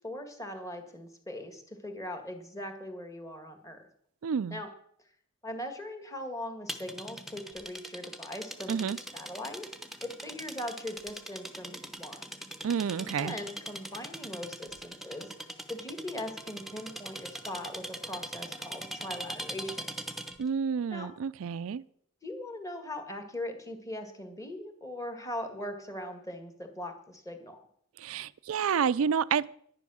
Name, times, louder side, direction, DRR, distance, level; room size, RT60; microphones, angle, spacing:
voice 1, 0.0-3.9 4.5-4.7 5.4-9.7 10.0-12.3 13.0-15.3 15.7-19.9 20.9-21.1 22.2-27.7, left 1 dB, 15° left, 6 dB, 1.7 m, -40 dB
voice 2, 4.2-4.6 8.7-9.0 12.6-13.4 20.4-21.8 28.0-29.5, right 7 dB, 80° right, 16 dB, 0.4 m, -29 dB
sound 1, 6.7-20.5, right 1 dB, ahead, 1.0 m, -41 dB
10.5 x 10.5 x 6.2 m, 0.65 s
head